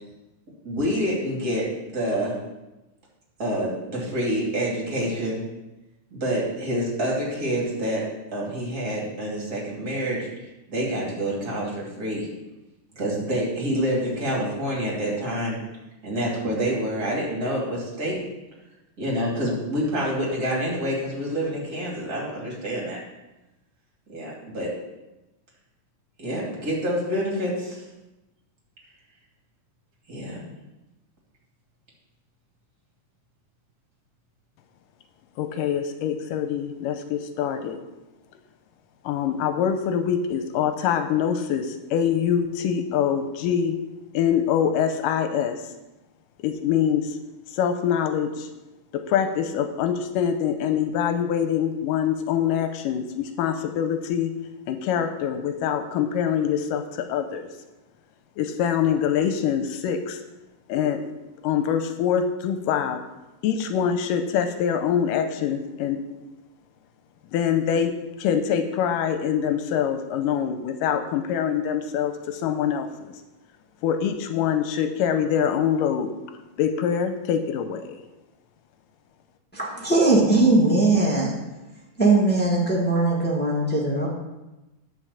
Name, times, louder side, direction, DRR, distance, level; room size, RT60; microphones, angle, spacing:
voice 1, 0.6-2.4 3.4-5.4 6.1-8.0 8.3-10.3 10.7-12.3 12.9-15.6 16.0-18.2 19.0-23.0 24.1-24.7 26.2-27.8 30.1-30.4, equal, 30° right, -4 dB, 2.7 m, -27 dB
voice 2, 35.4-37.8 39.1-43.8 44.1-45.6 46.4-47.1 47.5-48.5 48.9-54.3 54.7-57.5 58.4-60.2 60.7-61.0 61.4-63.0 63.4-66.0 67.3-67.9 68.2-73.1 73.8-76.1 76.6-78.0, left 8 dB, 85° left, 8 dB, 2.2 m, -24 dB
voice 3, 79.5-81.3 82.0-84.1, right 2 dB, 5° left, -4 dB, 0.8 m, -20 dB
9.9 x 5.0 x 7.0 m, 1.0 s
omnidirectional pair, 3.8 m